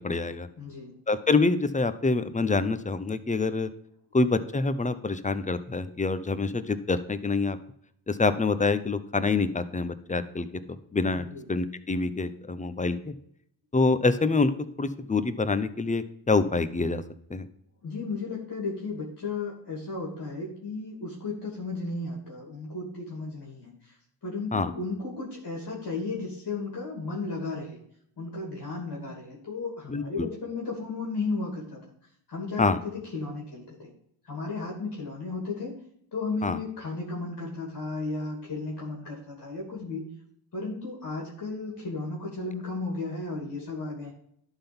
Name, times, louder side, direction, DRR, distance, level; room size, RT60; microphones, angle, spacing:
voice 1, 0.0-0.5 1.1-3.7 4.1-7.6 8.1-13.1 13.7-14.5 14.8-17.0 17.3-17.5 24.5-24.7 29.9-30.3 32.6-32.8 36.4-36.6, left 3 dB, 20° left, 12 dB, 0.8 m, -26 dB
voice 2, 0.6-1.0 11.1-11.4 17.8-24.0 24.2-27.8 28.2-31.8 32.3-33.9 34.2-35.8 36.1-40.0 40.5-44.1, left 3 dB, 55° left, -3 dB, 3.0 m, -34 dB
11.5 x 4.0 x 5.4 m, 0.70 s
cardioid pair, 60°, 42 cm